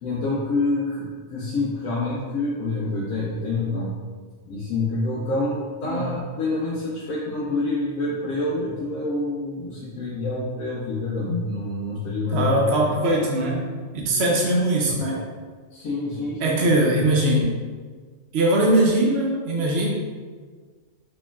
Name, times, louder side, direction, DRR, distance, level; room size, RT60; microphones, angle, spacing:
voice 1, 0.0-3.9 4.5-12.9 14.9-15.1 15.7-16.6, left 2 dB, 85° left, -6 dB, 1.0 m, -27 dB
voice 2, 12.3-13.6 13.9-15.2 16.4-17.6 18.3-19.9, right 1 dB, 60° right, -3 dB, 0.8 m, -21 dB
4.4 x 3.0 x 2.3 m, 1.5 s
omnidirectional pair, 1.4 m